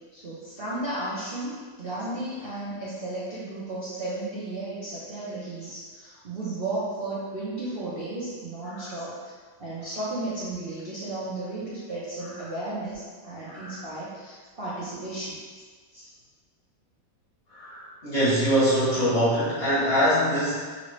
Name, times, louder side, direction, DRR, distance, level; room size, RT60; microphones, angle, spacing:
voice 1, 0.1-9.3 9.6-15.4, right 2 dB, 65° right, -10 dB, 0.5 m, -34 dB
voice 2, 13.4-13.8 15.9-16.1 17.5-20.8, equal, 45° left, -10 dB, 0.9 m, -24 dB
3.2 x 2.7 x 3.1 m, 1.5 s
omnidirectional pair, 2.0 m